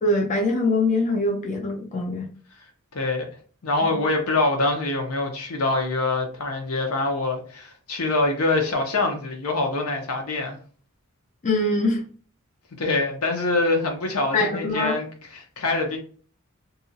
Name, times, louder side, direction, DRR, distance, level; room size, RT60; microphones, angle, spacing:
voice 1, 0.0-2.3 3.8-3.9 11.4-12.0 14.3-15.0, left 2 dB, 35° left, 0.5 m, -23 dB
voice 2, 2.9-3.3 3.6-10.6 12.8-15.1 15.3-16.0, left 2 dB, 75° left, 0.7 m, -24 dB
2.8 x 2.3 x 2.6 m
head